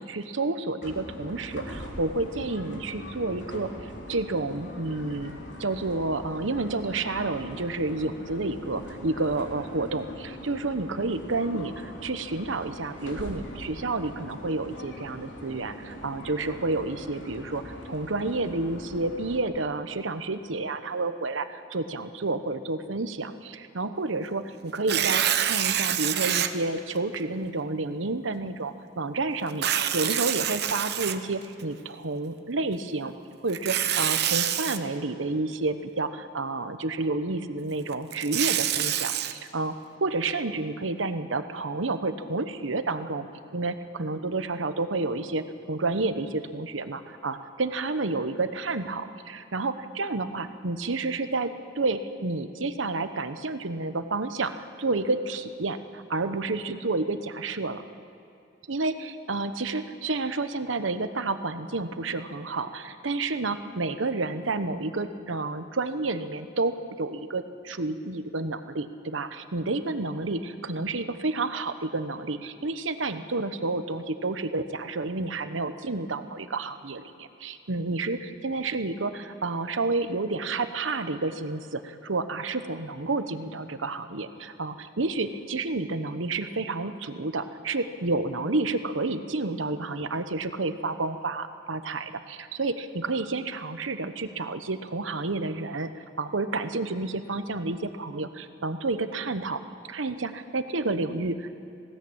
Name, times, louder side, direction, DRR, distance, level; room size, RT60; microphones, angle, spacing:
voice 1, 0.0-5.3 5.6-29.7 29.9-33.1 33.4-43.3 43.5-57.8 58.7-99.6 99.9-101.5, right 3 dB, 80° right, 10 dB, 1.1 m, -30 dB
sound 1, 0.8-19.4, equal, 65° left, 3.5 m, -41 dB
Tearing, 24.8-26.5 27.1-27.2 29.5-31.6 33.5-34.8 37.9-39.3, right 10 dB, 55° right, 0.9 m, -26 dB
20.0 x 17.0 x 8.8 m, 2.6 s
head